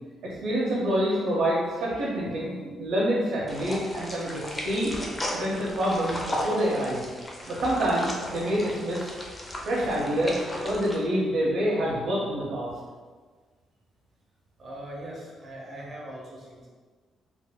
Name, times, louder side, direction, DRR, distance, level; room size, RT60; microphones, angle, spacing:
voice 1, 0.2-5.0 5.3-7.1 7.5-9.1 9.7-12.7, equal, 75° right, -7 dB, 0.6 m, -27 dB
sound 1, 3.5-11.0, left 1 dB, 20° left, 0.5 m, -35 dB
voice 2, 14.6-16.7, right 1 dB, 45° right, -4 dB, 0.8 m, -40 dB
3.5 x 2.5 x 2.2 m, 1.5 s
cardioid pair, 90°, 0 cm